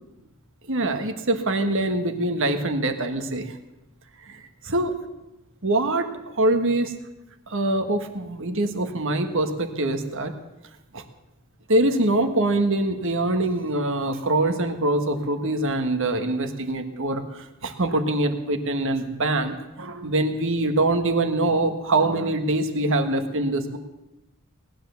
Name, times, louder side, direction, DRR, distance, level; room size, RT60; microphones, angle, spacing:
voice 1, 0.7-3.6 4.6-4.9 5.6-6.9 7.5-10.3 10.9-11.0 11.7-23.8, right 2 dB, 60° right, 7 dB, 1.5 m, -24 dB
19.0 x 10.5 x 7.0 m, 0.97 s
head